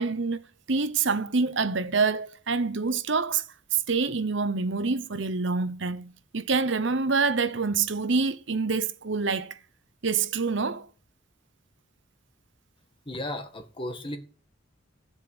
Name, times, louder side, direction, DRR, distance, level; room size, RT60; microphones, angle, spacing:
voice 1, 0.0-3.4 3.7-9.6 10.0-10.9, right 4 dB, 65° right, 0.9 m, -26 dB
voice 2, 13.1-14.2, left 1 dB, 25° left, 1.6 m, -34 dB
14.0 x 7.4 x 7.9 m
head